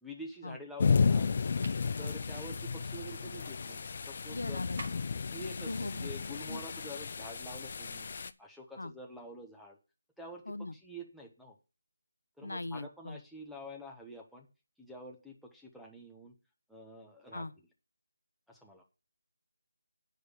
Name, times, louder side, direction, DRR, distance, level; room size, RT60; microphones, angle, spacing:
voice 1, 0.0-1.3 2.0-4.7 5.3-8.1 8.4-9.8 10.2-11.6 12.4-14.5 14.8-16.3 16.7-17.5 18.5-18.8, equal, ahead, 1.2 m, -47 dB
sound 1, 0.8-8.3, left 5 dB, 45° left, 0.6 m, -33 dB
sound 2, 1.6-1.9 4.8-5.2, right 2 dB, 50° right, 2.2 m, -45 dB
voice 2, 4.3-5.1 5.6-6.6 8.8-8.9 10.5-10.8 12.4-13.2 17.3-17.5, left 2 dB, 85° left, 0.7 m, -40 dB
9.3 x 5.2 x 6.6 m
figure-of-eight pair, 165°, 0 cm